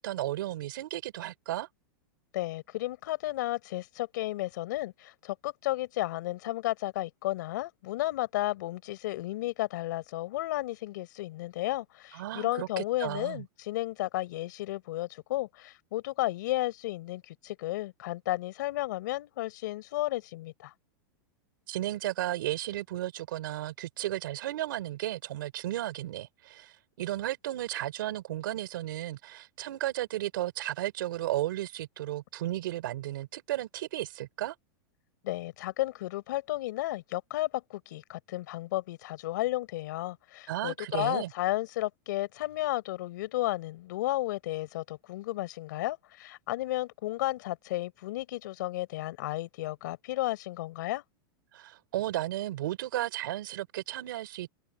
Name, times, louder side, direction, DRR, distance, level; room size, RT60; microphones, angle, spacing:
voice 1, 0.0-1.7 12.1-13.4 21.7-26.7 27.0-34.5 40.5-41.3 51.5-54.6, right 14 dB, 65° right, 4.2 m, -34 dB
voice 2, 2.3-20.7 35.2-51.0, left 16 dB, 55° left, 5.1 m, -33 dB
open air
supercardioid pair, 180°, 12 cm